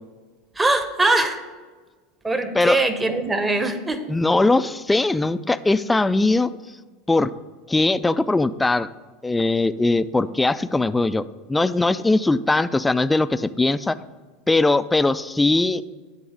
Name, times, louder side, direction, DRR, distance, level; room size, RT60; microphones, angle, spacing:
voice 1, 0.5-1.4 2.2-4.1, right 2 dB, 15° right, 9 dB, 0.9 m, -22 dB
voice 2, 4.1-6.5 7.1-7.3 7.7-8.9 9.2-11.2 11.5-14.0 14.5-15.8, left 2 dB, 10° left, 14 dB, 0.3 m, -20 dB
10.0 x 3.9 x 5.0 m, 1.4 s
hypercardioid pair, 85°, 0 cm